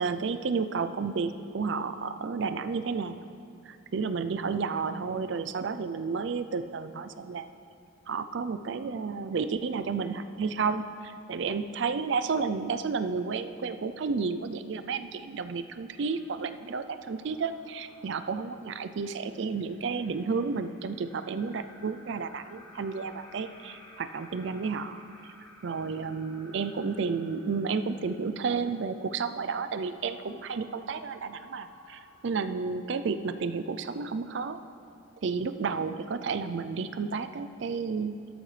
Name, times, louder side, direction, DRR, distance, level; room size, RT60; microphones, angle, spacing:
voice 1, 0.0-3.3 3.7-7.5 8.1-25.0 25.6-34.6 35.2-38.2, right 5 dB, 60° right, 11 dB, 0.4 m, -31 dB
sound 1, 15.6-33.0, left 1 dB, 20° left, 1.6 m, -56 dB
13.0 x 8.7 x 3.3 m, 2.4 s
head